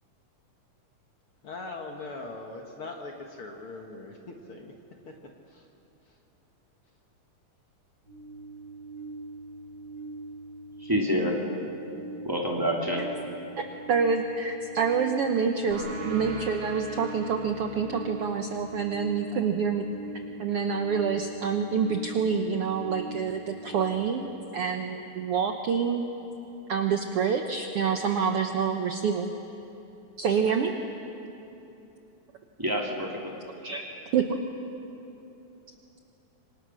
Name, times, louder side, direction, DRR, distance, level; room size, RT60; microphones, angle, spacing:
voice 1, 1.4-4.7 5.5-5.7, left 3 dB, 50° left, 1 dB, 2.0 m, -40 dB
sound 1, 8.0-23.9, right 2 dB, 30° right, 5.4 m, -42 dB
voice 2, 10.8-11.3 12.2-13.1 32.6-33.3, equal, 5° right, -2 dB, 2.4 m, -27 dB
voice 3, 13.6-19.8 20.4-26.0 26.7-29.3 30.2-30.7 33.6-33.8 34.1-34.4, right 6 dB, 65° right, 5 dB, 1.5 m, -27 dB
sound 2, 15.7-20.9, right 3 dB, 85° right, 4.2 m, -42 dB
26.5 x 25.0 x 6.3 m, 3.0 s
omnidirectional pair, 3.6 m